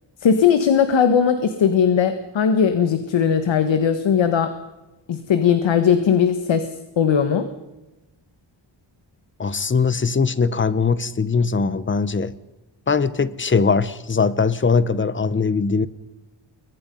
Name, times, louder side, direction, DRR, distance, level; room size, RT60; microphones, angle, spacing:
voice 1, 0.2-4.5 5.1-6.7 7.0-7.5, left 7 dB, 70° left, 9 dB, 1.7 m, -18 dB
voice 2, 9.4-12.4 12.9-15.9, left 5 dB, 25° left, 16 dB, 0.9 m, -20 dB
29.0 x 23.0 x 5.5 m, 1.0 s
wide cardioid pair, 165°, 47 cm